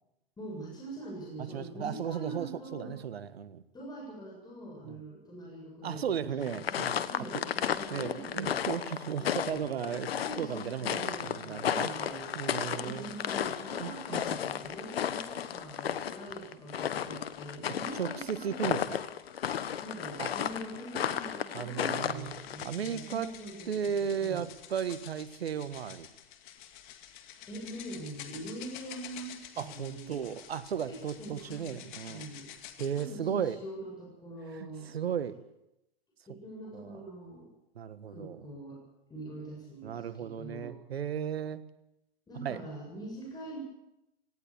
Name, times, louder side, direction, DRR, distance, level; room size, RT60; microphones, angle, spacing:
voice 1, 0.4-2.9 3.7-8.6 9.2-9.7 10.2-12.3 12.7-19.0 19.7-23.9 24.2-24.4 27.5-30.3 30.8-32.5 33.0-34.9 36.3-37.5 38.1-38.8 39.1-40.7 42.3-43.6, right 1 dB, 15° left, -2 dB, 7.5 m, -44 dB
voice 2, 1.4-3.6 4.8-5.0 5.8-7.0 7.3-7.4 7.9-11.9 12.3-13.1 13.8-14.2 14.5-14.7 18.0-19.0 20.2-20.3 21.5-22.4 22.6-23.3 23.7-26.1 29.6-32.3 32.8-33.6 34.5-35.4 36.7-37.0 37.7-38.5 39.8-41.6 42.3-42.6, right 8 dB, 80° right, 14 dB, 1.5 m, -35 dB
sound 1, 6.4-22.6, left 9 dB, 80° left, 1.3 m, -34 dB
sound 2, 22.1-33.1, left 11 dB, 50° left, 2.3 m, -49 dB
18.0 x 17.5 x 8.6 m, 0.88 s
hypercardioid pair, 115°, 30 cm